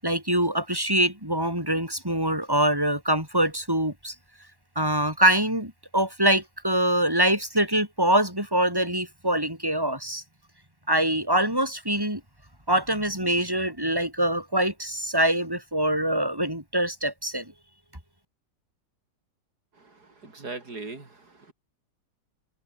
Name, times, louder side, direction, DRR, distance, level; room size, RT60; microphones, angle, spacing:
voice 1, 0.0-4.1 4.8-10.2 10.9-12.2 12.7-17.5, right 1 dB, 15° right, 7.6 m, -24 dB
voice 2, 19.8-21.5, right 3 dB, 90° right, 4.7 m, -40 dB
omnidirectional pair, 1.6 m